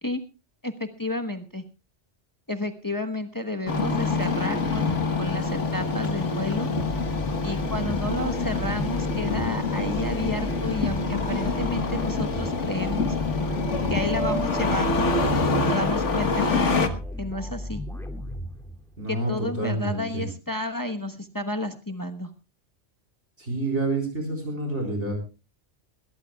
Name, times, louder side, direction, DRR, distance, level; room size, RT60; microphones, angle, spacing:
voice 1, 0.6-1.6 2.5-6.7 7.4-13.1 13.9-15.1 15.6-16.8 17.2-17.8 19.1-22.3, left 1 dB, 20° left, 6 dB, 1.1 m, -31 dB
Engine starting, 3.7-16.9, left 3 dB, 80° left, 1.7 m, -26 dB
sound 1, 6.8-19.1, left 1 dB, ahead, 2.6 m, -35 dB
voice 2, 19.0-20.3 23.4-25.1, right 2 dB, 70° right, 0 dB, 4.7 m, -28 dB
21.5 x 17.0 x 2.3 m, 0.30 s
omnidirectional pair, 1.2 m